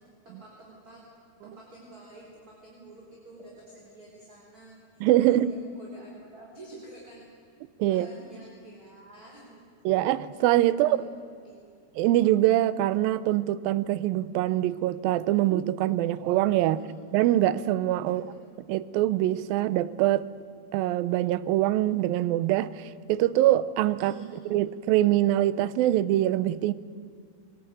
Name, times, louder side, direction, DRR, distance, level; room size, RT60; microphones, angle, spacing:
voice 1, 0.2-1.0 1.4-7.3 7.8-9.7 10.7-10.9 11.3-11.7 16.7-16.9 18.0-18.2 23.9-24.4, right 2 dB, 20° right, 4.3 m, -48 dB
voice 2, 5.0-5.5 7.8-8.1 9.9-11.0 12.0-16.8 17.1-18.2 18.7-20.3 20.7-24.1 24.5-26.7, right 14 dB, 75° right, 2.3 m, -24 dB
22.0 x 20.0 x 9.3 m
omnidirectional pair, 4.6 m